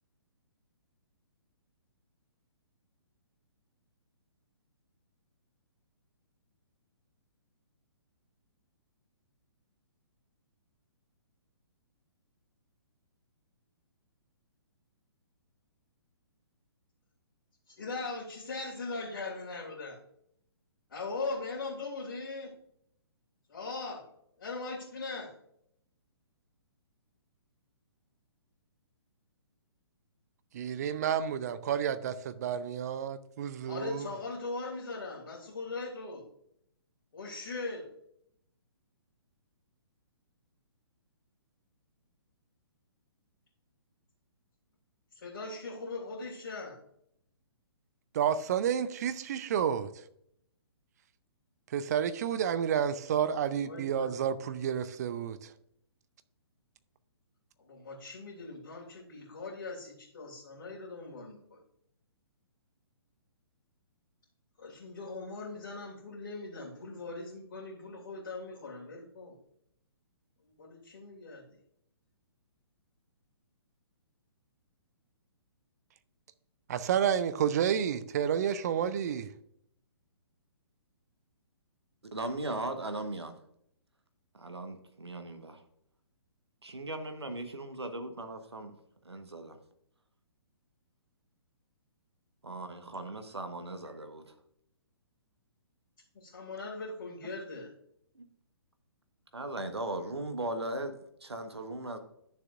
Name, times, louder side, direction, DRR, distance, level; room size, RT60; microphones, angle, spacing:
voice 1, 17.7-20.0 20.9-22.5 23.5-24.0 24.4-25.3 33.7-36.2 37.1-37.9 45.1-46.8 53.5-54.1 57.6-61.6 64.6-69.4 70.6-71.6 96.1-97.7, left 3 dB, 50° left, 2.5 m, -40 dB
voice 2, 30.5-34.1 48.1-49.9 51.7-55.5 76.7-79.3, right 8 dB, 40° right, 0.6 m, -30 dB
voice 3, 82.1-83.4 84.3-85.6 86.6-88.7 89.0-89.6 92.4-94.3 97.2-97.3 98.1-98.2 99.3-102.0, right 1 dB, 75° right, 1.3 m, -38 dB
11.5 x 6.9 x 2.6 m
figure-of-eight pair, 125°, 14 cm